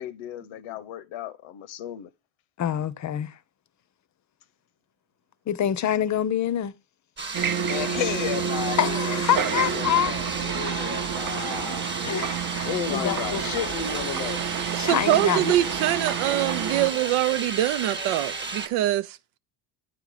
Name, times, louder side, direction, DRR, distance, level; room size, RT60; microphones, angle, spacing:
voice 1, 0.0-2.1 7.6-11.9 12.7-14.4, left 11 dB, 85° left, 0.9 m, -33 dB
voice 2, 2.6-3.4 5.5-6.7 8.8-10.1 12.0-13.5 14.8-15.5, left 10 dB, 35° left, 0.6 m, -26 dB
sound 1, 7.2-18.7, right 4 dB, 25° right, 1.1 m, -33 dB
sound 2, 7.3-16.9, right 8 dB, 45° right, 0.8 m, -30 dB
voice 3, 14.7-19.2, right 13 dB, 90° right, 0.7 m, -24 dB
9.2 x 3.8 x 4.9 m
cardioid pair, 130°, 47 cm